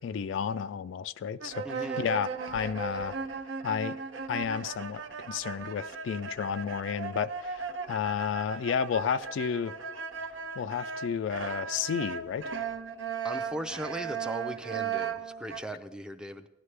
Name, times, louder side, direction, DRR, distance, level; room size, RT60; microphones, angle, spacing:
voice 1, 0.0-3.2 3.6-4.0 4.3-9.7 10.6-12.5, left 7 dB, 75° left, 0.3 m, -32 dB
sound 1, 1.4-15.6, right 6 dB, 75° right, 0.7 m, -37 dB
voice 2, 1.6-2.1 13.2-16.5, equal, 5° right, 0.4 m, -38 dB
16.0 x 11.0 x 3.3 m
head